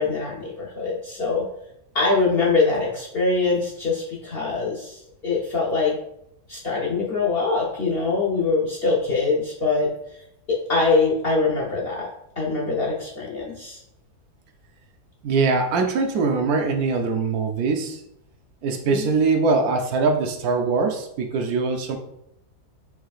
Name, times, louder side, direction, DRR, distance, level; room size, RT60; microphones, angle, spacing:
voice 1, 0.0-1.4 1.9-4.9 5.2-5.9 6.5-9.9 10.5-12.1 12.4-13.8 18.8-19.0, left 3 dB, 55° left, -4 dB, 0.7 m, -23 dB
voice 2, 15.2-18.0 18.6-22.0, right 4 dB, 70° right, 4 dB, 1.1 m, -22 dB
4.7 x 4.5 x 2.4 m, 0.77 s
omnidirectional pair, 1.7 m